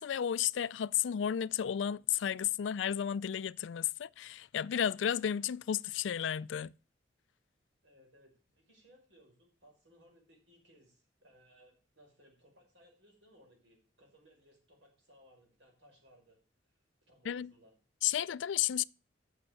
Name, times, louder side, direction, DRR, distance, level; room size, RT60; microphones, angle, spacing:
voice 1, 0.0-6.7 17.3-17.5 18.0-18.8, left 9 dB, 85° left, 0.4 m, -33 dB
voice 2, 7.8-16.4 17.1-17.8, equal, 80° right, 5.5 m, -63 dB
8.6 x 6.6 x 6.5 m
head